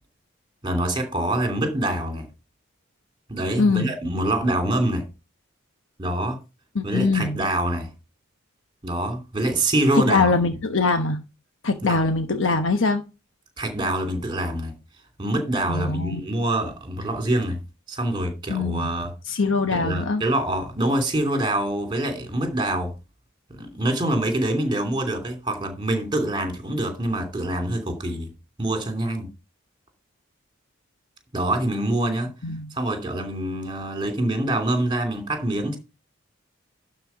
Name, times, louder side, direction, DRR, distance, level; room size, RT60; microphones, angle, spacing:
voice 1, 0.6-2.3 3.3-5.1 6.0-6.4 6.8-7.9 8.8-10.3 11.8-12.0 13.6-14.8 15.2-17.6 17.9-19.1 19.7-22.9 23.5-28.3 28.6-29.3 31.3-32.3 32.7-35.8, right 1 dB, 25° right, 2.8 m, -25 dB
voice 2, 3.6-3.9 6.7-7.4 9.9-11.2 11.6-13.0 15.7-16.3 18.5-18.9 19.3-20.2 32.4-32.7, left 3 dB, 70° left, 1.1 m, -22 dB
12.0 x 4.5 x 5.7 m
head